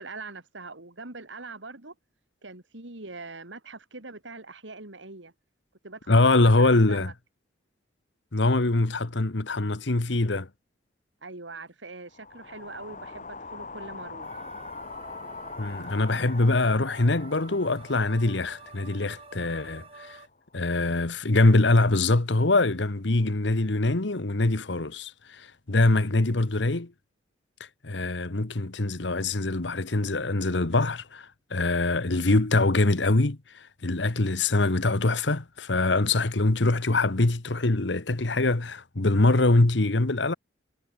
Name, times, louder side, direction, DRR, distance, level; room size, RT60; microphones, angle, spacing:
voice 1, 0.0-1.9 2.4-5.3 5.8-7.1 11.2-14.4, right 3 dB, 85° right, 3.1 m, -42 dB
voice 2, 6.1-7.1 8.3-10.5 15.6-20.2 20.5-26.9 27.8-40.3, left 2 dB, 75° left, 1.3 m, -23 dB
sound 1, 12.1-20.3, left 3 dB, 45° left, 6.2 m, -43 dB
sound 2, 14.2-20.3, right 4 dB, 30° right, 4.5 m, -49 dB
head